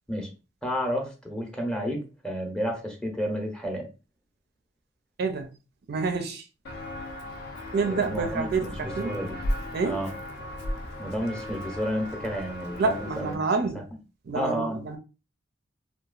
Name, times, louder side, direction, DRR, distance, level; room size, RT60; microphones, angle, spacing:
voice 1, 0.6-3.9 7.9-9.4 9.8-10.1 11.0-13.3 14.3-14.8, equal, 5° left, 0.6 m, -31 dB
voice 2, 5.2-5.5 5.9-6.4 7.7-9.1 9.7-10.0 12.8-13.8 14.3-15.0, right 4 dB, 55° right, 0.4 m, -28 dB
Walk footsteps, 6.6-13.3, left 1 dB, 60° left, 0.5 m, -36 dB
2.8 x 2.2 x 2.3 m
head